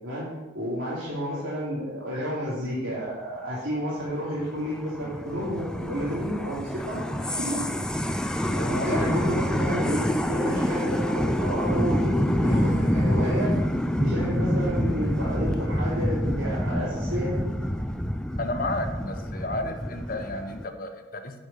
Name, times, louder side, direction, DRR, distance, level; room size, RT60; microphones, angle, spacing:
voice 1, 0.0-7.0 7.3-7.6 8.7-13.5 14.0-17.4, equal, 85° right, -9 dB, 3.1 m, -31 dB
sound 1, 4.1-20.6, equal, 5° left, 0.4 m, -27 dB
voice 2, 8.5-9.0 18.4-21.3, left 2 dB, 45° left, 6 dB, 1.0 m, -32 dB
9.6 x 5.3 x 6.9 m, 1.1 s
head